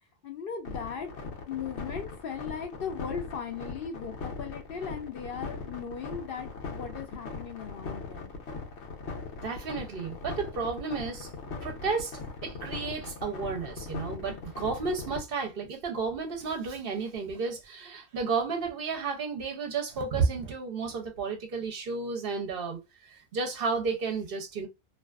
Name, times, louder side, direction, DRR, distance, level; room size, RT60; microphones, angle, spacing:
voice 1, 0.2-1.1 1.5-8.3, left 7 dB, 65° left, 0.7 m, -38 dB
sound 1, 0.7-15.2, left 4 dB, 80° left, 1.0 m, -39 dB
voice 2, 9.4-11.3 11.6-24.7, right 4 dB, 60° right, 0.7 m, -32 dB
2.5 x 2.3 x 2.2 m
omnidirectional pair, 1.2 m